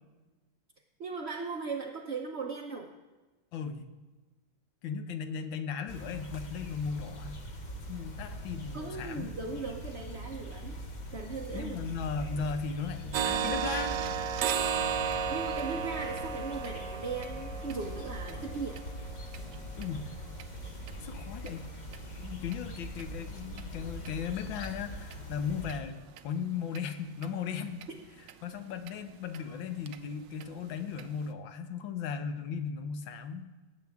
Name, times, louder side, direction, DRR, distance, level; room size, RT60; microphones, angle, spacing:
voice 1, 1.0-2.9 8.7-10.8 11.1-11.8 15.3-18.8, right 4 dB, 55° right, 0 dB, 0.7 m, -38 dB
voice 2, 3.5-3.9 4.8-7.4 7.9-9.3 11.5-13.9 19.8-20.1 21.0-21.7 22.2-25.9 26.2-27.8 28.4-33.5, left 6 dB, 80° left, 8 dB, 1.6 m, -36 dB
sound 1, 5.9-25.8, equal, 40° left, 0.6 m, -42 dB
sound 2, 12.0-20.6, left 1 dB, 55° left, 2.5 m, -58 dB
sound 3, 13.1-20.9 21.4-21.5 21.9-22.1 22.5-22.6 23.0-23.1 23.6-23.7 24.0-24.1 24.6-24.7 25.1-25.2 25.7-25.8 26.2-26.3 26.7-26.8 27.2-27.3 27.8-27.9 28.3-28.4 28.9-29.0 29.3-29.4 29.9-30.0 30.4-30.5 31.0-31.1, right 7 dB, 75° right, 1.2 m, -34 dB
18.5 x 7.9 x 3.5 m, 1.2 s
omnidirectional pair, 2.1 m